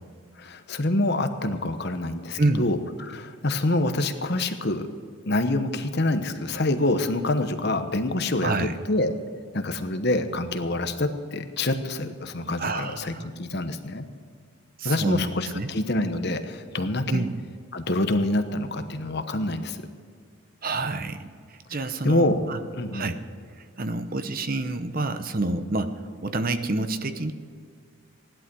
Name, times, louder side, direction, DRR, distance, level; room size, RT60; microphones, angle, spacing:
voice 1, 0.4-4.9 5.2-9.1 9.5-14.1 14.8-17.3 17.7-19.8 22.0-22.4 22.7-23.1, left 2 dB, 50° left, 8 dB, 1.1 m, -26 dB
voice 2, 8.4-8.8 12.6-13.3 14.8-15.3 15.6-15.7 17.1-17.4 20.6-22.6 22.9-23.2 23.6-27.3, right 2 dB, 40° right, 10 dB, 0.8 m, -28 dB
16.5 x 11.5 x 6.2 m, 2.1 s
head